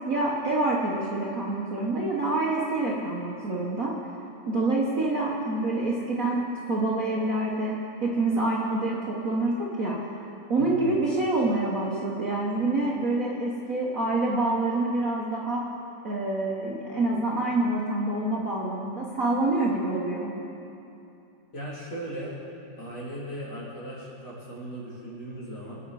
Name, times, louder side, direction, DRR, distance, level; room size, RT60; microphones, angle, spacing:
voice 1, 0.0-4.0 4.5-10.0 10.5-15.7 16.0-20.3, right 2 dB, 85° right, -4 dB, 0.7 m, -27 dB
voice 2, 10.6-11.0 21.5-22.4 22.8-25.8, right 1 dB, 35° left, -6 dB, 3.5 m, -37 dB
23.5 x 8.9 x 4.8 m, 2.8 s
omnidirectional pair, 3.5 m